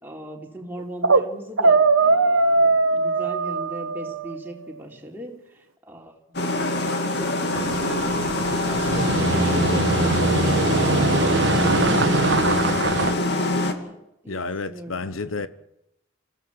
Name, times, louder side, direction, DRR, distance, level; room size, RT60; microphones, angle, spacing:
voice 1, 0.0-6.4 7.5-8.1 8.7-15.5, right 1 dB, 10° right, 3.8 m, -39 dB
sound 1, 0.8-1.3 1.6-4.4, right 3 dB, 80° right, 1.2 m, -19 dB
sound 2, 6.3-13.7, left 2 dB, 55° left, 2.5 m, -24 dB
sound 3, 7.5-13.1, right 3 dB, 60° right, 1.3 m, -23 dB
voice 2, 14.3-15.5, left 3 dB, 85° left, 1.0 m, -30 dB
26.0 x 16.0 x 7.9 m
head